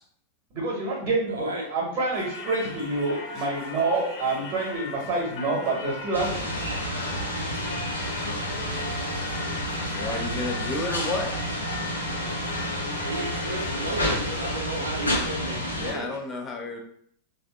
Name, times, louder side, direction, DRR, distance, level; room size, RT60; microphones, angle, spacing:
voice 1, 0.5-6.5, right 3 dB, 35° right, -3 dB, 1.0 m, -27 dB
voice 2, 1.3-1.7 13.0-16.2, right 2 dB, 70° right, 0 dB, 0.5 m, -34 dB
Singing / Church bell, 2.1-14.0, left 2 dB, 40° left, 0.9 m, -38 dB
sound 1, 6.1-15.9, left 1 dB, 80° left, 0.7 m, -30 dB
voice 3, 9.9-11.3 15.8-16.8, left 2 dB, 25° left, 1 dB, 0.5 m, -31 dB
3.2 x 2.5 x 2.3 m, 0.64 s
figure-of-eight pair, 90°, 0 cm